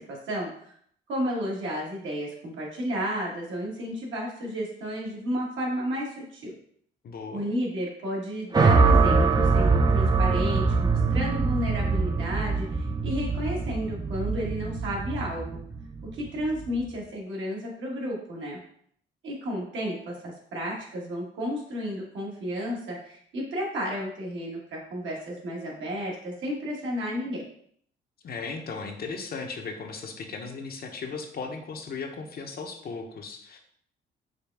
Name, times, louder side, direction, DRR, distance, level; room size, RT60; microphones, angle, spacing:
voice 1, 0.1-0.7 1.1-6.5 7.3-15.6 16.1-18.6 19.2-27.4, equal, 75° right, -3 dB, 1.5 m, -32 dB
voice 2, 7.0-7.5 28.2-33.6, left 4 dB, 50° left, 4 dB, 0.7 m, -36 dB
sound 1, 8.5-16.8, right 4 dB, 20° right, 0.4 m, -23 dB
4.9 x 2.3 x 3.4 m, 0.64 s
cardioid pair, 90°, 20 cm